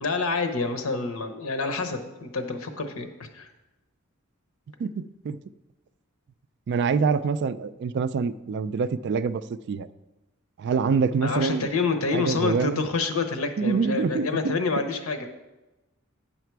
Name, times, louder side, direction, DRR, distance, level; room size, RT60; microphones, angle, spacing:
voice 1, 0.0-3.1 3.3-3.5 11.2-15.3, left 4 dB, 75° left, 7 dB, 0.9 m, -27 dB
voice 2, 4.8-5.4 6.7-9.9 10.6-11.7 12.1-12.8 13.6-14.6, right 5 dB, 55° right, 14 dB, 0.3 m, -26 dB
9.0 x 5.8 x 4.6 m, 1.1 s
head